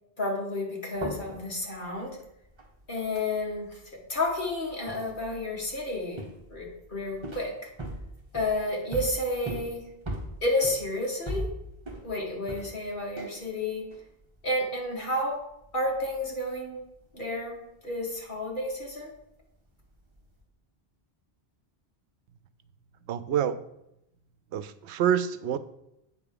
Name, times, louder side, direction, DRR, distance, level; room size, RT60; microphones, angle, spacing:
voice 1, 0.2-2.2 2.9-7.7 8.3-9.9 10.4-11.5 12.0-13.9 14.4-15.4 15.7-16.8 17.1-17.6 17.8-19.1, left 1 dB, 50° left, -1 dB, 2.0 m, -31 dB
sound 1, 0.9-13.5 13.7-14.9 15.2-17.6 17.8-19.4 19.8-20.4, right 1 dB, 25° right, 1.3 m, -41 dB
voice 2, 23.1-23.6 24.5-25.6, right 9 dB, 85° right, 13 dB, 0.9 m, -27 dB
8.5 x 3.6 x 6.7 m, 0.82 s
omnidirectional pair, 1.1 m